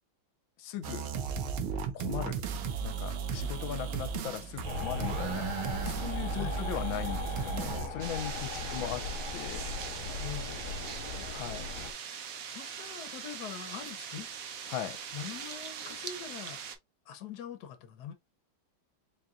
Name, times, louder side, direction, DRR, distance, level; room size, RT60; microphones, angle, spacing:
voice 1, 0.6-1.1 1.9-2.4 2.8-9.7 11.3-11.7 14.7-15.0, left 11 dB, 80° left, 1.3 m, -39 dB
sound 1, 0.8-7.9, right 6 dB, 90° right, 1.6 m, -35 dB
sound 2, 4.6-11.9, left 4 dB, 40° left, 1.4 m, -38 dB
voice 2, 6.3-6.6 8.3-8.8 10.2-10.6 12.5-14.3 15.1-16.6 17.1-18.1, left 8 dB, 60° left, 1.2 m, -43 dB
sound 3, 8.0-16.7, right 7 dB, 70° right, 0.8 m, -41 dB
4.3 x 2.4 x 3.6 m
omnidirectional pair, 2.3 m